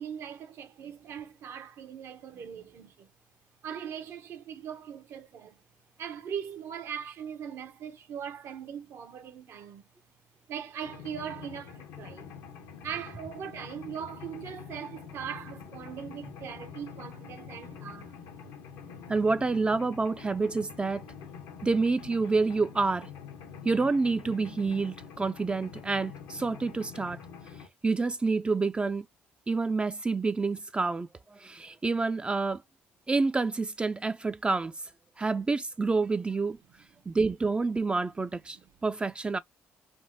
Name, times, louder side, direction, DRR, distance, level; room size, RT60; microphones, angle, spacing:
voice 1, 0.0-3.1 3.6-5.6 6.0-9.8 10.5-12.3 12.8-18.2 21.2-21.3 38.5-38.6, right 8 dB, 65° right, 0.8 m, -40 dB
Mechanisms, 10.8-27.7, left 6 dB, 85° left, 0.8 m, -46 dB
voice 2, 19.1-21.0 21.6-23.1 23.6-27.2 27.8-29.1 29.5-32.6 33.1-34.7 35.2-36.6 37.1-39.4, right 3 dB, 20° right, 0.3 m, -28 dB
3.3 x 2.1 x 2.6 m
supercardioid pair, 65°, 5 cm